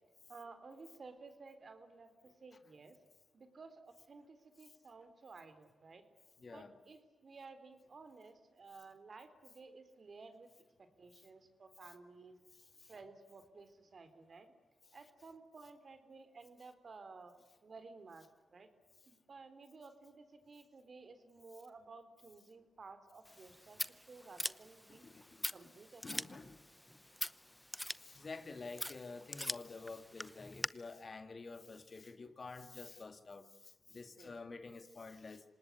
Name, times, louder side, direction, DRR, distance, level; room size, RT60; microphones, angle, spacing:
voice 1, 0.3-3.0 3.3-6.0 6.4-10.5 10.8-12.4 12.9-14.5 14.9-17.4 17.6-18.7 19.1-25.0 25.5-26.4 34.2-34.4, right 4 dB, 55° right, 9 dB, 3.9 m, -55 dB
voice 2, 6.4-6.7 12.8-12.9 24.9-25.4 26.0-26.6 28.0-35.4, left 3 dB, 50° left, 9 dB, 2.4 m, -49 dB
Scissors, 23.3-30.7, left 1 dB, 10° left, 0.8 m, -44 dB
26.0 x 19.5 x 9.6 m, 1.1 s
supercardioid pair, 45°, 0 cm